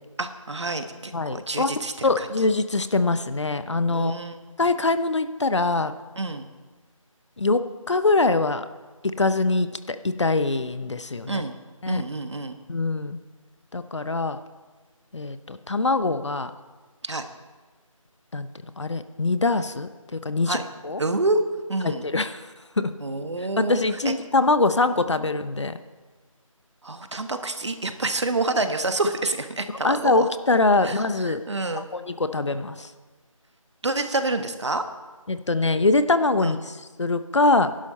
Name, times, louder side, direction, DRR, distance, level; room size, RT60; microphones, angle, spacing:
voice 1, 0.2-2.3 3.9-4.4 6.2-6.5 11.3-11.5 11.9-12.6 17.0-17.2 20.5-20.6 21.0-21.4 21.7-22.1 23.0-24.1 26.8-30.3 30.8-31.9 33.8-34.8 36.4-36.6, right 2 dB, 55° right, 8 dB, 1.3 m, -28 dB
voice 2, 1.1-1.7 2.0-4.1 4.6-5.9 7.4-8.7 9.0-11.4 11.8-12.0 12.7-13.2 13.7-14.4 15.1-16.5 18.3-18.5 18.8-20.6 20.8-21.0 21.8-22.5 22.8-22.9 23.6-25.8 29.8-31.4 31.7-32.9 35.3-37.8, left 3 dB, 55° left, 11 dB, 0.8 m, -23 dB
20.5 x 11.5 x 4.3 m, 1.3 s
figure-of-eight pair, 170°, 18 cm